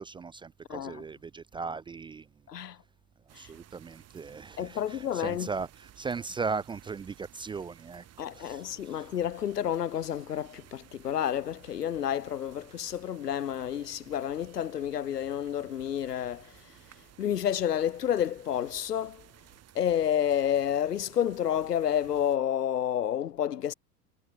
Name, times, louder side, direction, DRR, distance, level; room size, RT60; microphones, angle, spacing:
voice 1, 0.0-2.3 3.3-8.1 8.3-9.0, right 4 dB, 10° right, 0.5 m, -37 dB
voice 2, 0.7-1.0 2.5-2.8 3.3-3.5 4.6-5.5 8.2-16.6 17.2-19.3 19.7-23.7, left 10 dB, 80° left, 1.3 m, -30 dB
sound 1, 3.3-22.4, right 12 dB, 30° right, 3.1 m, -56 dB
figure-of-eight pair, 90°, 47 cm